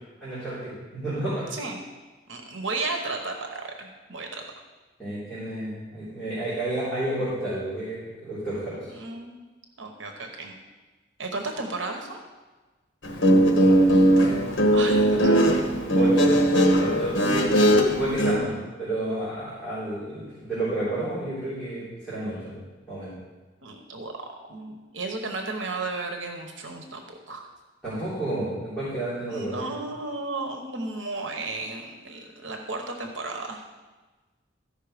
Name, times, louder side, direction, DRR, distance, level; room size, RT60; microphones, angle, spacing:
voice 1, 0.2-1.4 5.0-8.9 13.5-14.3 15.2-16.4 16.8-22.6 22.9-23.1 27.8-29.7, right 1 dB, 5° left, -14 dB, 3.9 m, -31 dB
voice 2, 2.3-4.4 8.9-9.4 9.8-10.5 11.2-12.2 14.7-15.7 23.6-24.1 24.5-27.5 29.3-33.6, right 3 dB, 80° right, 3 dB, 1.1 m, -34 dB
Guitar, 13.0-18.4, right 1 dB, 75° left, 1.2 m, -19 dB
13.5 x 5.6 x 5.1 m, 1.3 s
head